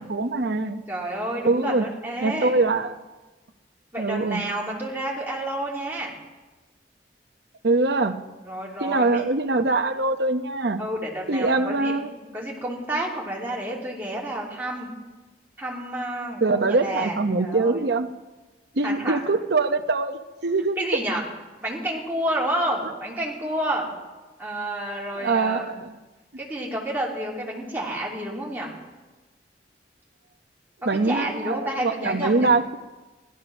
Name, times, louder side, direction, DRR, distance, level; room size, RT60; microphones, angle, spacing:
voice 1, 0.1-0.8 1.4-1.9 2.2-2.9 4.0-4.4 7.6-8.2 8.8-10.8 11.3-12.1 16.4-18.1 18.8-20.8 25.2-26.0 30.8-32.8, right 3 dB, 70° right, 7 dB, 0.9 m, -23 dB
voice 2, 0.9-2.6 3.9-6.2 8.4-9.3 10.8-11.9 12.2-14.9 15.6-17.8 18.8-19.2 20.8-21.2 21.6-23.9 24.4-25.7 26.4-28.7 30.8-32.5, right 1 dB, 10° right, -4 dB, 3.0 m, -30 dB
15.5 x 12.5 x 6.0 m, 1.2 s
head